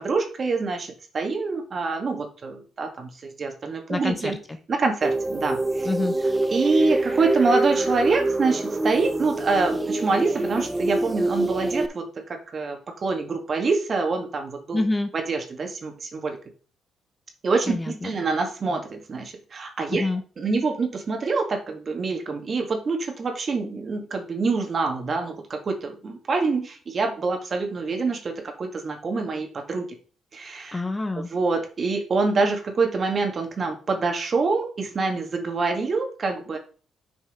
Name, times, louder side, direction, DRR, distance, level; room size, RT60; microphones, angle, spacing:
voice 1, 0.0-4.4 4.7-5.9 6.5-14.8 15.3-16.4 17.4-20.1 20.4-29.9 30.3-30.8 31.1-36.6, right 4 dB, 45° right, 4 dB, 2.2 m, -26 dB
voice 2, 3.9-4.4 5.8-6.1 14.7-15.1 17.7-18.1 19.9-20.2 30.7-31.3, left 2 dB, 20° left, 8 dB, 0.9 m, -26 dB
sound 1, 5.0-11.9, right 2 dB, 15° right, 0.7 m, -25 dB
6.7 x 5.3 x 5.1 m, 0.38 s
cardioid pair, 90°, 0 cm